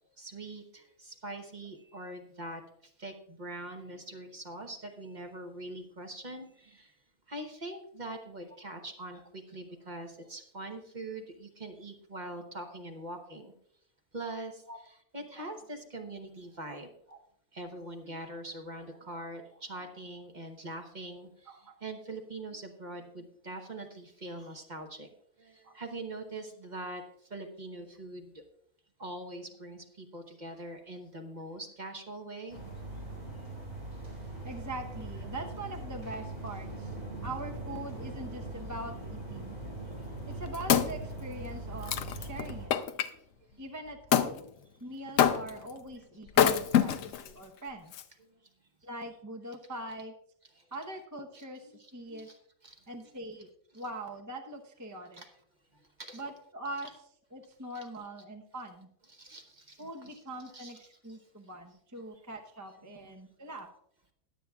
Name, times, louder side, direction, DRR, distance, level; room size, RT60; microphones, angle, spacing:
voice 1, 0.2-6.9 7.3-13.5 14.1-14.6 15.1-16.9 17.5-25.1 25.4-28.4 29.0-32.6 40.0-40.1 43.1-43.2 43.5-43.6 46.5-47.0 50.5-50.7 51.3-51.4 51.7-52.4 52.6-52.8 53.7-53.8 55.2-55.3 55.7-56.2 59.1-60.1 60.5-61.2 62.8-63.1, right 2 dB, 35° right, 4 dB, 1.0 m, -43 dB
voice 2, 21.5-21.8 25.6-25.8 34.4-39.6 40.3-42.7 43.6-44.5 44.8-47.9 48.8-50.1 50.7-52.3 52.9-55.2 56.1-56.9 57.3-58.9 59.8-63.7, right 1 dB, 15° right, 3 dB, 0.7 m, -43 dB
sound 1, 32.5-42.7, right 2 dB, 85° right, 5.0 m, -41 dB
Wood, 40.1-43.1 44.1-44.3 45.2-45.7 46.3-47.3 47.9-48.0, left 9 dB, 70° left, 1.0 m, -26 dB
21.0 x 7.8 x 2.3 m, 0.71 s
omnidirectional pair, 1.5 m